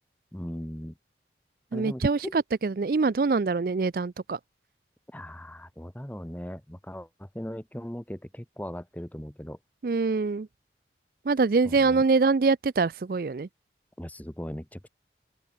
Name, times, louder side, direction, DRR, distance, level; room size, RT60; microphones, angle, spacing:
voice 1, 0.3-0.9 1.7-2.4 5.1-9.6 11.6-12.0 14.0-14.9, equal, 10° left, 1.0 m, -38 dB
voice 2, 1.7-4.4 9.8-10.5 11.3-13.5, right 4 dB, 55° right, 0.4 m, -24 dB
open air
head